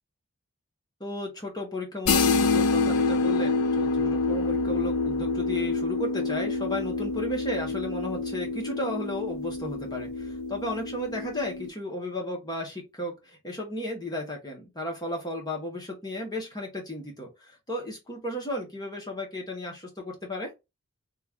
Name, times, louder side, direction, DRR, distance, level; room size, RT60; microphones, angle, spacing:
voice 1, 1.0-20.5, left 1 dB, 20° left, 0 dB, 0.8 m, -34 dB
sound 1, 2.1-11.7, left 3 dB, 75° left, 0.5 m, -27 dB
3.0 x 2.3 x 3.4 m, 0.23 s
head